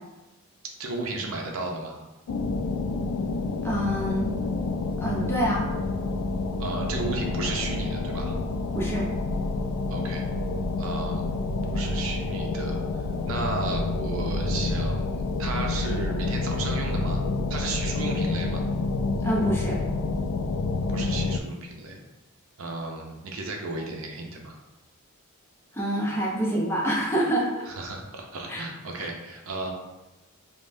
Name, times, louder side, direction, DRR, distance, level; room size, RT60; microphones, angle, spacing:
voice 1, 0.8-2.0 6.6-8.3 9.9-10.3 10.8-12.8 13.2-17.2 17.5-18.6 20.9-22.0 22.6-24.6 27.7-29.7, right 2 dB, 70° right, 1 dB, 0.6 m, -34 dB
sound 1, 2.3-21.4, left 3 dB, 85° left, 0.3 m, -28 dB
voice 2, 3.6-4.3 5.0-5.7 8.7-9.1 19.2-19.8 25.7-27.7 28.5-28.7 29.0-29.1, right 1 dB, 10° left, -4 dB, 0.6 m, -26 dB
5.3 x 2.1 x 2.6 m, 1.1 s
head